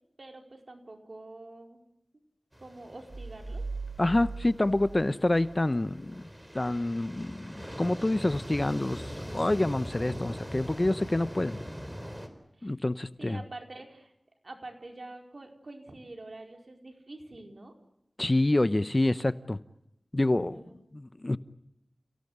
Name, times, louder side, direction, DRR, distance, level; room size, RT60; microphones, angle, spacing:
voice 1, 0.2-1.8 2.6-3.6 12.6-12.7 13.2-14.1 14.4-17.7 20.5-20.8, right 2 dB, 60° right, 3 dB, 4.9 m, -46 dB
sound 1, 2.5-12.3, equal, 10° right, 4.4 m, -42 dB
sound 2, 3.1-5.7, right 3 dB, 45° right, 1.5 m, -39 dB
voice 2, 4.0-6.3 6.5-11.6 12.6-13.4 18.2-19.6 20.1-20.6 20.9-21.4, left 1 dB, 35° left, 13 dB, 1.0 m, -27 dB
29.5 x 17.5 x 8.2 m, 0.85 s
wide cardioid pair, 40°, 0 cm